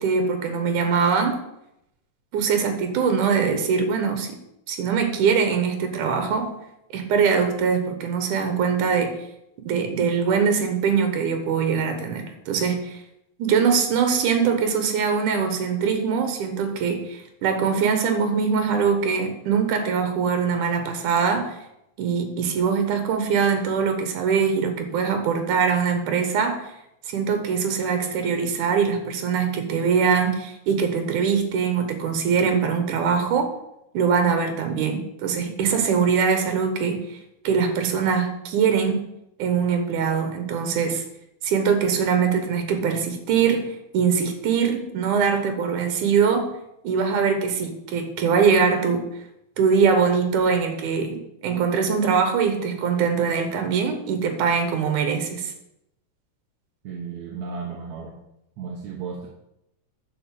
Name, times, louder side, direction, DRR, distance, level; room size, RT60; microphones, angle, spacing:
voice 1, 0.0-1.4 2.3-4.3 4.7-6.5 6.9-9.2 9.7-13.0 13.4-21.6 22.0-26.7 27.1-33.5 33.9-37.2 37.4-39.0 39.4-41.0 41.4-46.5 46.8-49.0 49.6-55.5, right 6 dB, 90° right, 7 dB, 2.7 m, -22 dB
voice 2, 56.8-58.2 58.6-59.3, right 5 dB, 70° right, -1 dB, 2.4 m, -34 dB
10.5 x 5.1 x 7.5 m, 0.82 s
omnidirectional pair, 3.5 m